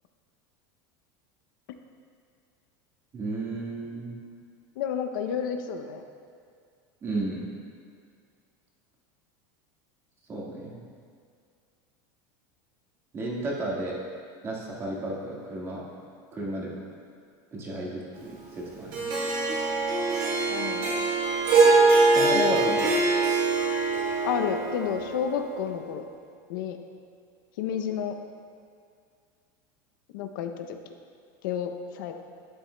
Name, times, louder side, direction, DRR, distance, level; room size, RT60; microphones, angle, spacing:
voice 1, 3.1-4.2 7.0-7.4 10.3-10.8 13.1-14.0 14.4-15.8 16.3-16.7 17.5-19.1 22.1-22.9, right 2 dB, 25° right, -4 dB, 1.7 m, -33 dB
voice 2, 4.8-6.0 20.5-21.1 22.3-22.6 24.2-26.0 26.5-26.8 27.6-28.2 30.1-30.8 31.4-32.1, left 8 dB, 80° left, 6 dB, 0.6 m, -30 dB
Harp, 18.9-25.3, right 3 dB, 45° right, 2.0 m, -23 dB
11.5 x 9.0 x 2.2 m, 2.2 s
supercardioid pair, 155°, 11 cm